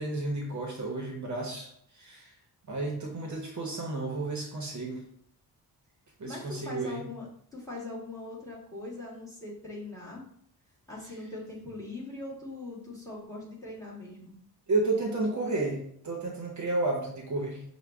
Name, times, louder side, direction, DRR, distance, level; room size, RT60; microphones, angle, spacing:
voice 1, 0.0-2.3 2.6-5.0 6.2-7.1 14.7-17.6, right 2 dB, 45° right, 0 dB, 0.8 m, -32 dB
voice 2, 6.3-10.2 10.9-14.4, left 2 dB, 10° left, -5 dB, 1.5 m, -41 dB
6.1 x 2.2 x 3.4 m, 0.68 s
wide cardioid pair, 135°, 40 cm